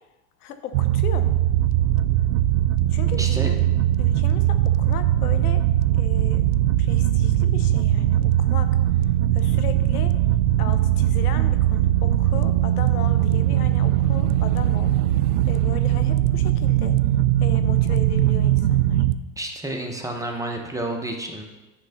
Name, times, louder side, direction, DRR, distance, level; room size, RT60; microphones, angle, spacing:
voice 1, 0.4-1.3 2.9-3.5 4.0-5.7 6.0-6.4 6.8-8.8 9.3-10.2 10.6-15.0 15.5-17.0 17.4-19.0, left 9 dB, 85° left, 9 dB, 0.9 m, -36 dB
sound 1, 0.7-19.2, right 13 dB, 75° right, 0.5 m, -20 dB
voice 2, 3.2-3.5 19.4-21.4, right 1 dB, 10° right, 2 dB, 0.7 m, -30 dB
9.8 x 3.3 x 5.7 m, 1.1 s
supercardioid pair, 115°, 44 cm